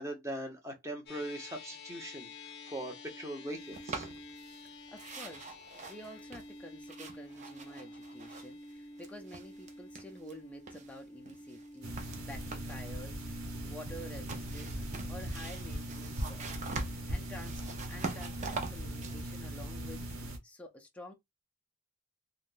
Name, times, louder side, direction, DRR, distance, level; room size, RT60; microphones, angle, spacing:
voice 1, 0.0-2.3 2.7-4.1, right 1 dB, 15° right, 1.0 m, -40 dB
sound 1, 1.1-19.6, left 2 dB, 55° left, 0.6 m, -51 dB
sound 2, 3.7-4.7 5.0-8.7 9.0-10.4 10.7-12.9 14.0-20.3, right 4 dB, 35° right, 0.6 m, -45 dB
voice 2, 4.6-5.5 5.9-14.8 15.1-16.5 17.1-17.6 17.9-21.1, equal, 5° left, 0.5 m, -50 dB
sound 3, 11.8-20.4, equal, 85° right, 1.0 m, -39 dB
3.5 x 2.3 x 2.5 m
head